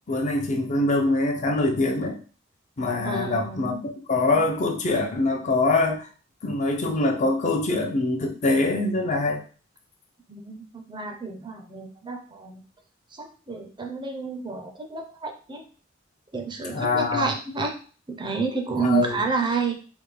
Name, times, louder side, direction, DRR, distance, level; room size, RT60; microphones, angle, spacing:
voice 1, 0.1-2.2 2.8-6.1 6.4-9.4 16.6-17.3 18.8-19.2, left 2 dB, 40° left, 2 dB, 0.6 m, -24 dB
voice 2, 3.0-3.8 10.3-12.6 13.1-15.6 16.3-17.7 18.1-19.8, right 4 dB, 25° right, 4 dB, 0.5 m, -30 dB
3.4 x 2.2 x 3.2 m, 0.39 s
head